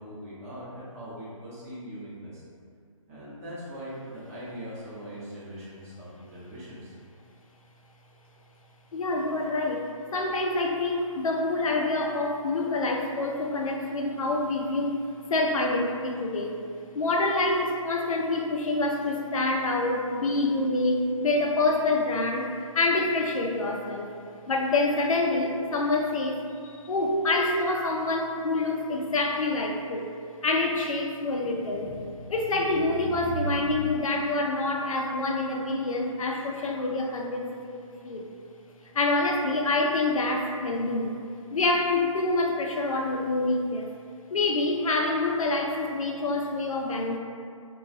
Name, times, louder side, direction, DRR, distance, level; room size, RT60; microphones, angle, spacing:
voice 1, 0.0-2.4 3.1-6.9, equal, 25° right, -10 dB, 0.8 m, -41 dB
voice 2, 8.9-16.6 16.9-22.5 22.7-24.1 24.5-30.1 30.4-37.8 38.0-38.3 38.9-41.1 41.5-43.9 44.3-47.2, left 2 dB, 75° left, 1 dB, 0.4 m, -26 dB
2.9 x 2.2 x 2.5 m, 2.3 s
figure-of-eight pair, 150°, 18 cm